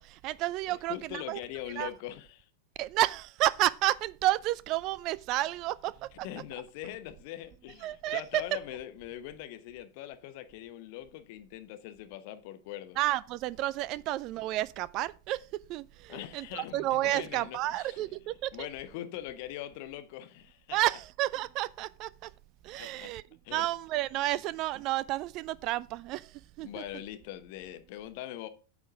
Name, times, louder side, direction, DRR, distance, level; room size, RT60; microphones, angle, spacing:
voice 1, 0.0-1.4 1.8-1.9 2.8-6.3 7.8-8.4 13.0-15.4 15.7-18.7 20.7-22.3 22.6-23.2 23.5-26.3 26.6-26.7, right 16 dB, 40° right, 0.3 m, -31 dB
voice 2, 0.7-2.5 6.1-13.0 16.1-18.2 18.5-20.8 22.8-23.1 23.4-23.7 26.6-28.5, left 12 dB, 45° left, 0.9 m, -42 dB
8.8 x 4.9 x 5.2 m
figure-of-eight pair, 90°, 0 cm